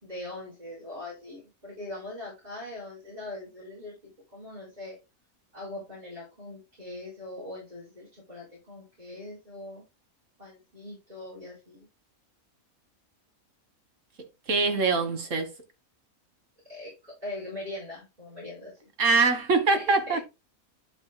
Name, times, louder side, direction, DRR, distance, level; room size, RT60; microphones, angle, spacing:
voice 1, 0.0-5.0 5.5-9.8 10.4-11.9 16.7-18.9 19.7-20.2, left 2 dB, 25° right, 4.5 m, -41 dB
voice 2, 14.5-15.5 19.0-20.2, right 4 dB, 60° right, 1.9 m, -23 dB
11.5 x 5.3 x 2.2 m
omnidirectional pair, 1.5 m